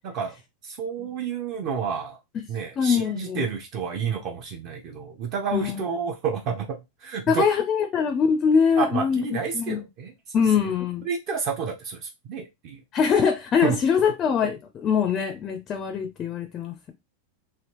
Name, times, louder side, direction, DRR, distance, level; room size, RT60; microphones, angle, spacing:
voice 1, 0.0-0.3 0.6-2.2 2.5-7.5 8.8-10.1 11.0-12.8 13.6-13.8, right 6 dB, 40° right, 0.6 m, -30 dB
voice 2, 2.8-3.4 5.5-5.8 7.3-9.2 9.5-9.8 10.3-11.0 12.9-16.7, left 6 dB, 25° left, 0.5 m, -23 dB
3.3 x 2.5 x 2.9 m
supercardioid pair, 160°, 0 cm